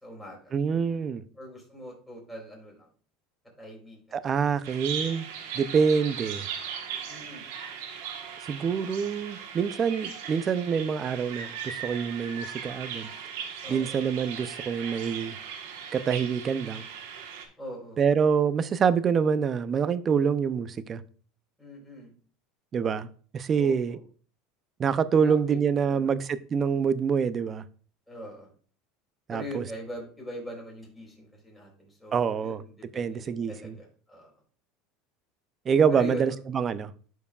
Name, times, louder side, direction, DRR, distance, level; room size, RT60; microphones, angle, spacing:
voice 1, 0.0-0.5 1.4-2.9 3.6-4.2 7.1-7.5 13.6-14.0 17.6-18.0 21.6-22.1 23.5-24.0 25.2-25.6 25.9-26.2 28.1-28.5 29.3-34.3 35.9-36.4, equal, 10° left, -2 dB, 3.9 m, -41 dB
voice 2, 0.5-1.2 4.1-5.3 5.5-6.5 8.4-13.1 13.7-15.4 15.9-16.8 18.0-21.0 22.7-23.1 23.3-24.0 24.8-27.6 29.3-29.6 32.1-32.6 33.0-33.8 35.7-36.9, right 6 dB, 30° right, 14 dB, 0.5 m, -26 dB
Bird vocalization bird call bird song, 4.6-17.5, right 7 dB, 80° right, 1.5 m, -38 dB
12.0 x 4.6 x 2.4 m, 0.42 s
supercardioid pair, 115°, 0 cm